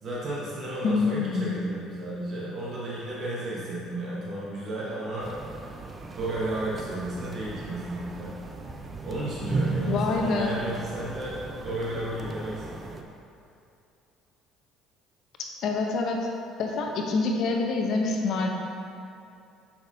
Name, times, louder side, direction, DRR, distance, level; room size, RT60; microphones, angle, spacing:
voice 1, 0.0-5.4 6.1-8.3 9.0-12.7, right 1 dB, 45° right, -7 dB, 1.2 m, -33 dB
voice 2, 0.8-1.6 9.9-10.6 15.6-16.3 16.6-18.5, left 4 dB, 60° left, 1 dB, 0.8 m, -26 dB
sound 1, 5.2-13.0, right 3 dB, 30° right, 0.6 m, -35 dB
6.6 x 5.8 x 2.8 m, 2.5 s
supercardioid pair, 80°, 0 cm